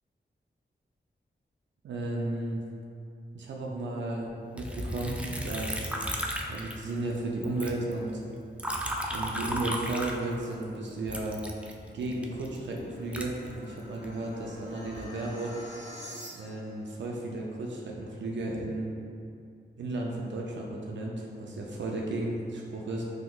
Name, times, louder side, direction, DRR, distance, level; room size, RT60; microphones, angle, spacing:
voice 1, 1.8-2.6 3.3-5.9 6.5-8.2 9.1-11.4 11.9-15.6 16.3-18.9 19.8-23.0, right 2 dB, 75° right, -2 dB, 0.4 m, -34 dB
Liquid, 4.6-7.2 7.4-10.6 11.1-14.1 14.7-15.2, equal, 5° right, 0.3 m, -35 dB
sound 1, 11.8-16.8, equal, 70° left, 1.1 m, -47 dB
3.6 x 2.9 x 2.3 m, 2.5 s
cardioid pair, 45°, 19 cm